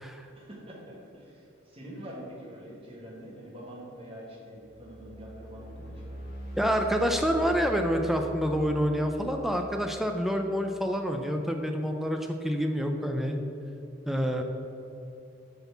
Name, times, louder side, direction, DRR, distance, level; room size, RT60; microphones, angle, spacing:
voice 1, 0.3-6.0, equal, 30° right, -5 dB, 1.7 m, -45 dB
sound 1, 4.5-10.7, equal, 45° left, 1.7 m, -43 dB
voice 2, 6.6-13.4 14.1-14.4, equal, ahead, 3 dB, 0.6 m, -27 dB
8.2 x 4.2 x 6.9 m, 2.8 s
head